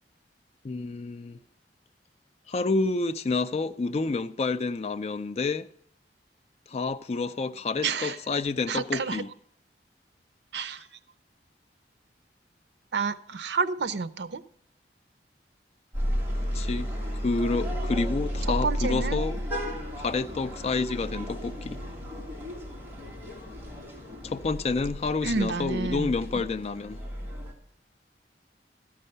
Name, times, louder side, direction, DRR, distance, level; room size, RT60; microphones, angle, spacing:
voice 1, 0.6-1.4 2.5-5.7 6.7-9.3 16.5-19.4 20.0-21.8 24.2-27.0, left 3 dB, 35° left, 0.4 m, -29 dB
voice 2, 7.8-8.2 8.7-9.2 10.5-10.9 12.9-14.4 18.6-19.2 25.2-26.5, right 4 dB, 75° right, 0.6 m, -30 dB
sound 1, 15.9-27.5, equal, 10° right, 2.0 m, -33 dB
13.0 x 5.5 x 6.6 m
head